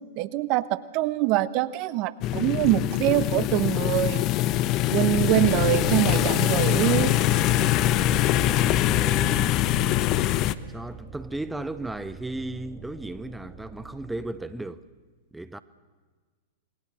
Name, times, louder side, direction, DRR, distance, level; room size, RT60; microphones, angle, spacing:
voice 1, 0.2-4.2 4.9-7.2, right 15 dB, 45° right, 1.0 m, -24 dB
sound 1, 2.2-10.5, left 14 dB, 40° left, 0.9 m, -23 dB
sound 2, 5.2-14.1, right 8 dB, 20° right, 6.7 m, -40 dB
voice 2, 8.8-9.9 10.7-14.8 15.3-15.6, right 2 dB, 5° right, 0.9 m, -35 dB
28.0 x 20.5 x 6.3 m
hypercardioid pair, 105°, 0 cm